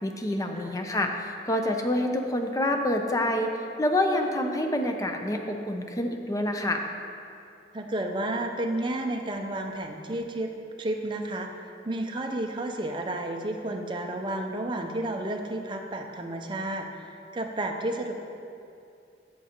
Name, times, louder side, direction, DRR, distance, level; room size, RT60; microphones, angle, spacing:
voice 1, 0.0-3.5 3.8-6.8, left 1 dB, 20° left, 4 dB, 0.5 m, -27 dB
voice 2, 7.7-10.5 10.8-18.1, right 1 dB, 25° right, 3 dB, 0.6 m, -31 dB
13.0 x 6.5 x 2.9 m, 2.6 s
head